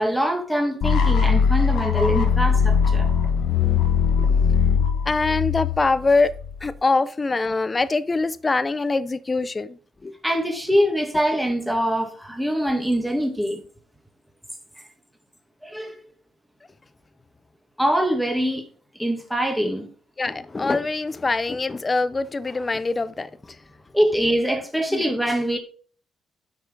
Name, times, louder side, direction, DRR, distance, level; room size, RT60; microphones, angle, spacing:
voice 1, 0.0-3.1 9.3-9.4 10.2-13.6 15.6-16.0 17.8-18.6 19.0-19.9 23.9-25.6, equal, ahead, 2.3 m, -23 dB
sound 1, 0.8-6.7, left 7 dB, 70° left, 1.3 m, -20 dB
voice 2, 5.1-6.3 6.6-9.8 10.0-10.1 20.2-23.3 24.9-25.0, left 3 dB, 25° left, 0.7 m, -23 dB
10.5 x 6.1 x 3.8 m
cardioid pair, 90°, 0 cm